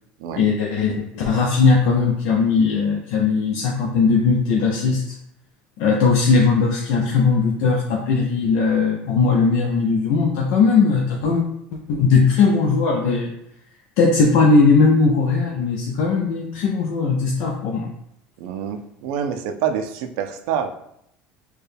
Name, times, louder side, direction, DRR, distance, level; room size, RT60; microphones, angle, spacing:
voice 1, 0.3-5.0 5.8-11.4 11.9-13.3 14.0-17.9, left 4 dB, 70° left, 0 dB, 0.5 m, -18 dB
voice 2, 18.4-20.7, right 8 dB, 75° right, 7 dB, 0.4 m, -26 dB
4.4 x 2.2 x 3.3 m, 0.75 s
cardioid pair, 135°, 4 cm